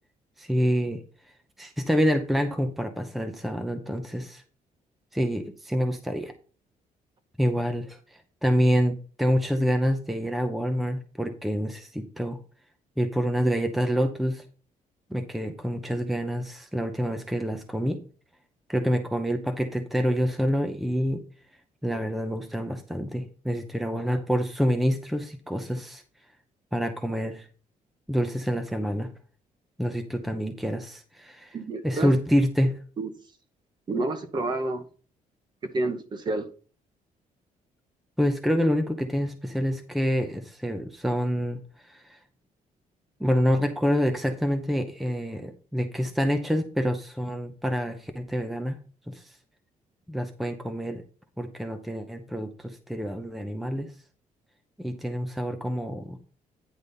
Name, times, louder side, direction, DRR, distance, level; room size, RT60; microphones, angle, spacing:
voice 1, 0.4-1.0 1.6-4.4 5.1-6.3 7.4-12.4 13.0-14.4 15.1-18.0 18.7-21.2 21.8-26.0 26.7-27.5 28.1-29.1 29.8-31.6 31.8-32.8 38.2-42.2 43.2-48.8 49.1-49.3 50.1-51.0 51.4-53.9 54.8-56.2, equal, ahead, 0.7 m, -27 dB
voice 2, 31.5-32.1 33.0-33.1 33.9-34.8 35.7-36.5, right 2 dB, 30° right, 0.9 m, -29 dB
9.8 x 4.0 x 5.4 m
cardioid pair, 170°, 14 cm